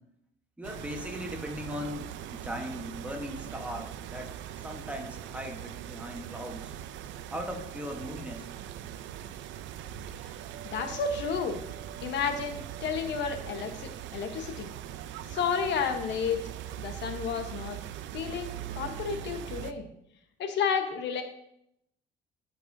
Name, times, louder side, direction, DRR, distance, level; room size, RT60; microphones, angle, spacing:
voice 1, 0.6-6.7 7.3-8.5, equal, 5° right, 2 dB, 1.1 m, -39 dB
sound 1, 0.6-19.7, right 11 dB, 85° right, 0.5 m, -41 dB
voice 2, 10.7-11.6 12.0-14.7 15.3-16.4 16.8-17.8 18.1-19.9 20.4-21.2, left 6 dB, 70° left, 6 dB, 1.0 m, -31 dB
13.0 x 5.3 x 2.6 m, 0.76 s
cardioid pair, 140°, 19 cm